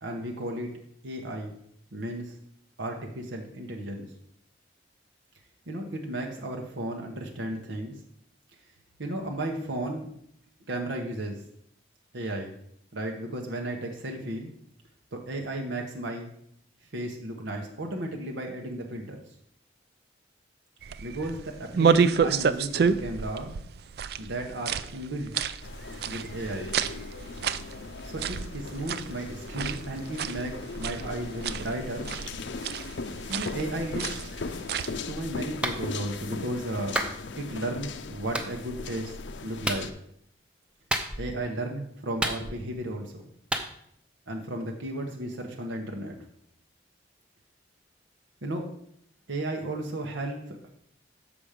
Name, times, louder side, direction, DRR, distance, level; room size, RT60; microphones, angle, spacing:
voice 1, 0.0-0.7 1.0-1.6 1.9-2.4 2.8-4.1 5.7-7.9 9.0-10.1 10.7-11.4 12.1-12.5 12.9-14.5 15.1-16.3 16.9-19.2 21.0-23.5 24.2-25.4 26.1-26.8 28.0-32.1 33.3-34.3 35.1-37.0 37.4-39.2 39.4-39.9 41.2-43.2 44.3-46.2 48.4-48.7 49.3-50.7, right 1 dB, 90° right, 1 dB, 1.1 m, -34 dB
sound 1, 20.8-35.0, right 6 dB, 55° right, 0.3 m, -30 dB
sound 2, 25.6-39.9, left 4 dB, 80° left, 0.6 m, -39 dB
Clapping, 35.6-35.8 37.0-37.2 38.3-38.5 39.6-39.9 40.9-41.4 42.2-42.8 43.5-43.7, right 1 dB, 5° right, 0.6 m, -29 dB
7.1 x 6.0 x 5.0 m, 0.69 s
head